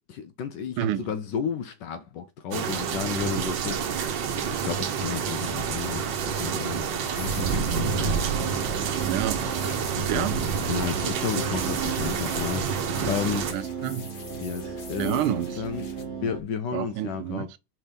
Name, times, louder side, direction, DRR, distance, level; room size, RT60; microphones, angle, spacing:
voice 1, 0.0-8.6 10.0-10.3 10.7-13.5 14.4-15.9 16.2-17.5, left 7 dB, 75° left, 1.0 m, -33 dB
voice 2, 0.8-1.1 3.4-3.5 9.1-9.6 10.1-10.4 11.3-11.7 13.5-14.1 15.0-15.6 16.7-17.6, right 12 dB, 90° right, 1.4 m, -30 dB
sound 1, 2.5-13.5, right 7 dB, 65° right, 1.4 m, -28 dB
sound 2, 7.1-16.0, left 5 dB, 55° left, 1.6 m, -46 dB
sound 3, 7.4-16.4, right 6 dB, 45° right, 1.0 m, -36 dB
5.3 x 3.5 x 5.2 m
omnidirectional pair, 2.3 m